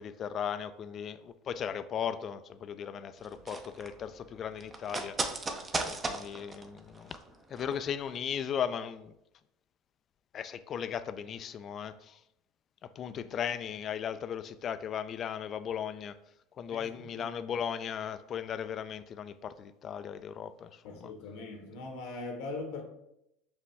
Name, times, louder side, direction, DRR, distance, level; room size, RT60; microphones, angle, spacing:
voice 1, 0.0-5.5 5.8-7.2 7.5-9.1 10.3-12.2 12.8-16.2 16.6-21.1, left 8 dB, 45° left, 0.3 m, -37 dB
sound 1, 3.2-7.8 8.1-8.2, right 3 dB, 25° right, 0.6 m, -37 dB
voice 2, 16.7-17.3 20.8-22.8, left 3 dB, 75° left, 1.0 m, -41 dB
6.0 x 2.1 x 3.4 m
hypercardioid pair, 85°, 0 cm